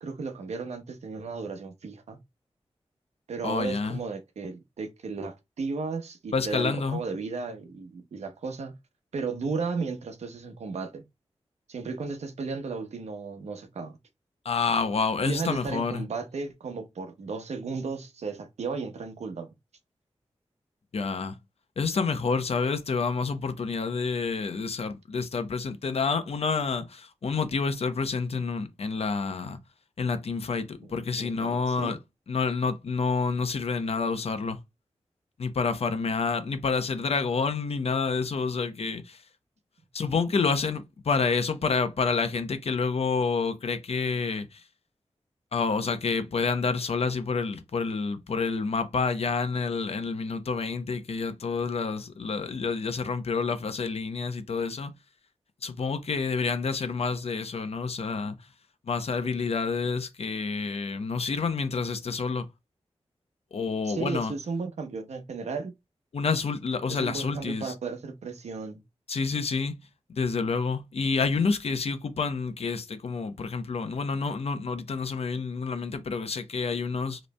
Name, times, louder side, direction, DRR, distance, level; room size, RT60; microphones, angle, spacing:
voice 1, 0.0-2.2 3.3-8.7 9.1-11.0 11.7-14.0 15.2-19.5 30.8-30.9 31.2-32.0 63.8-65.7 66.9-68.8, right 4 dB, 85° right, 0.9 m, -34 dB
voice 2, 3.4-4.0 6.3-7.0 14.4-16.0 20.9-21.4 21.8-29.6 30.0-32.0 32.3-34.6 35.4-39.2 39.9-44.6 45.5-54.9 55.6-58.4 58.9-62.5 63.5-64.3 66.1-67.7 69.1-69.8 70.1-77.2, left 4 dB, 65° left, 0.7 m, -28 dB
5.1 x 3.1 x 2.2 m
cardioid pair, 60°, 11 cm